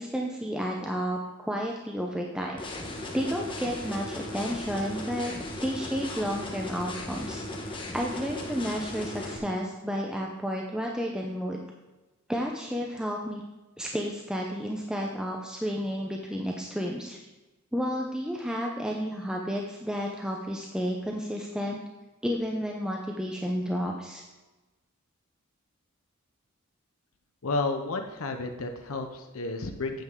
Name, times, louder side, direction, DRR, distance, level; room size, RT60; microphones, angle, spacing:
voice 1, 0.0-2.6 3.1-5.3 5.6-7.4 7.9-11.6 12.3-13.4 13.8-17.2 17.7-21.8 22.2-24.2, equal, 5° right, 0 dB, 0.6 m, -31 dB
sound 1, 2.6-9.4, left 1 dB, 25° left, 1.1 m, -37 dB
voice 2, 27.4-30.0, left 3 dB, 80° left, 5 dB, 0.8 m, -31 dB
8.9 x 7.8 x 3.7 m, 1.1 s
head